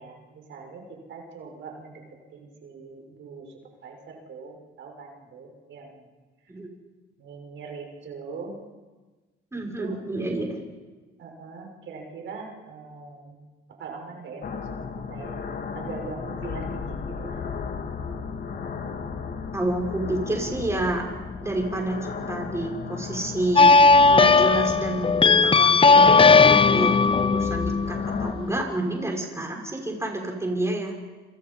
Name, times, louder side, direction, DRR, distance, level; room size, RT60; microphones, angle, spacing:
voice 1, 0.0-2.0 2.3-3.5 3.8-6.1 7.2-8.6 9.5-10.0 11.2-13.4 13.8-14.8 15.1-15.4 15.7-17.5, right 4 dB, 70° right, 2 dB, 6.1 m, -41 dB
voice 2, 9.5-10.6 19.5-21.0 21.4-23.7 24.1-26.9 27.2-30.9, right 1 dB, 15° right, 1 dB, 6.1 m, -29 dB
sound 1, 14.4-28.3, left 5 dB, 55° left, 3.3 m, -34 dB
sound 2, 23.6-28.6, left 4 dB, 25° left, 0.7 m, -17 dB
27.5 x 27.5 x 5.6 m, 1.3 s
cardioid pair, 90°, 20 cm